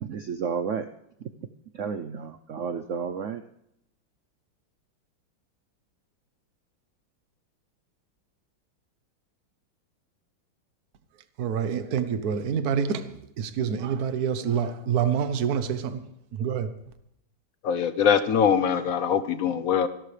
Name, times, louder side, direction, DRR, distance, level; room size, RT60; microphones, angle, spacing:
voice 1, 0.0-0.9 1.7-3.4, right 6 dB, 80° right, 10 dB, 0.6 m, -31 dB
voice 2, 11.4-16.1 16.3-16.7, right 7 dB, 55° right, 10 dB, 1.4 m, -27 dB
voice 3, 17.6-19.9, left 7 dB, 60° left, 12 dB, 0.9 m, -23 dB
26.0 x 12.0 x 3.3 m, 0.78 s
omnidirectional pair, 2.2 m